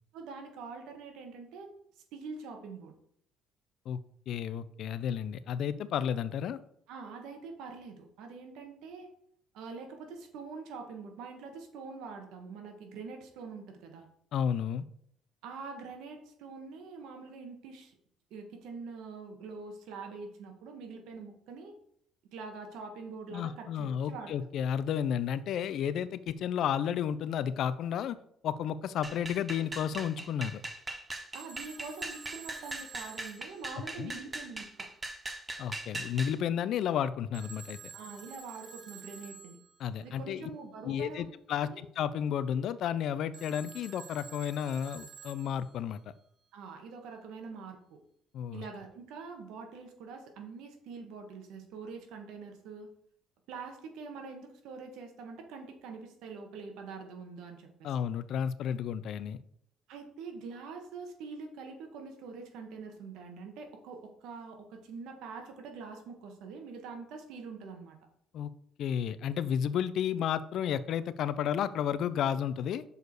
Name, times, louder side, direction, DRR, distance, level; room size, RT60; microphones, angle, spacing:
voice 1, 0.1-1.7 2.1-2.9 6.9-9.1 9.5-14.1 15.4-17.9 18.3-21.7 22.3-24.3 31.3-34.9 37.9-39.6 40.0-41.3 41.6-41.9 46.5-48.0 48.5-52.9 53.5-57.9 59.9-68.0, right 4 dB, 80° right, 4 dB, 1.5 m, -44 dB
voice 2, 4.3-6.6 14.3-14.8 23.3-28.2 28.4-30.6 34.0-34.1 35.6-37.9 39.8-40.5 40.8-46.0 48.3-48.6 57.8-59.4 68.3-68.5 68.8-72.8, left 9 dB, 60° left, 15 dB, 0.5 m, -32 dB
sound 1, 29.0-36.4, right 2 dB, 20° right, 0.8 m, -40 dB
Telephone, 31.3-34.4 37.3-39.9 43.3-46.0, right 6 dB, 45° right, 1.0 m, -50 dB
6.5 x 4.7 x 4.7 m, 0.70 s
cardioid pair, 110°, 0 cm